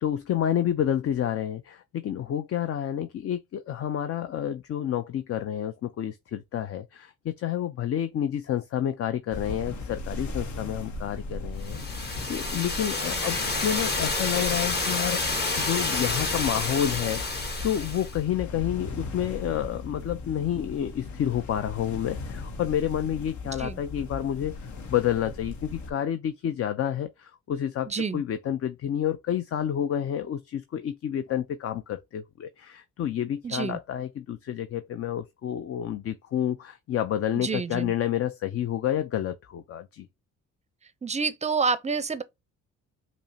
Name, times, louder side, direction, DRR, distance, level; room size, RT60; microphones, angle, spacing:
voice 1, 0.0-40.1, left 10 dB, 50° left, 0.5 m, -29 dB
sound 1, 9.3-25.9, left 3 dB, 70° left, 0.9 m, -38 dB
sound 2, 11.6-18.2, left 3 dB, 35° left, 1.3 m, -29 dB
voice 2, 27.9-28.2 33.4-33.8 37.3-37.9 41.0-42.2, right 5 dB, 25° right, 0.5 m, -28 dB
5.3 x 2.1 x 2.7 m
cardioid pair, 90°, 30 cm